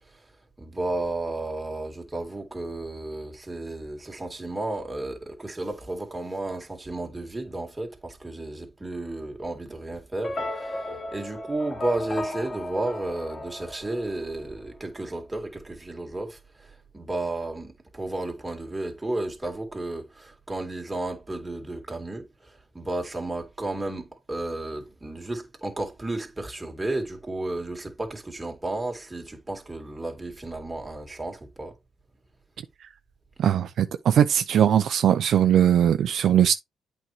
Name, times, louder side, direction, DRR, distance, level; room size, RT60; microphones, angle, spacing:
voice 1, 0.6-10.7 11.1-16.4 16.9-22.3 22.7-31.7, right 2 dB, 15° right, 2.2 m, -33 dB
sound 1, 10.2-14.6, left 1 dB, 35° left, 1.3 m, -35 dB
voice 2, 33.4-36.5, right 10 dB, 65° right, 0.5 m, -20 dB
8.4 x 4.5 x 3.0 m
cardioid pair, 90°, 0 cm